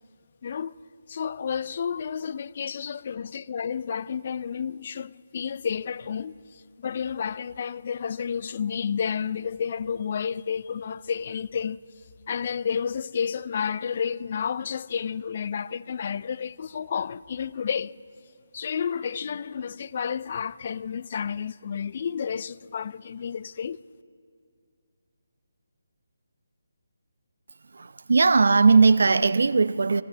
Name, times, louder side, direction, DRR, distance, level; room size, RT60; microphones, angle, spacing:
voice 1, 0.4-0.8 1.1-11.8 12.3-17.9 18.5-23.8, left 7 dB, 45° left, 0.4 m, -31 dB
voice 2, 27.7-30.0, right 4 dB, 70° right, 0.8 m, -19 dB
23.5 x 14.5 x 8.4 m
figure-of-eight pair, 155°, 0 cm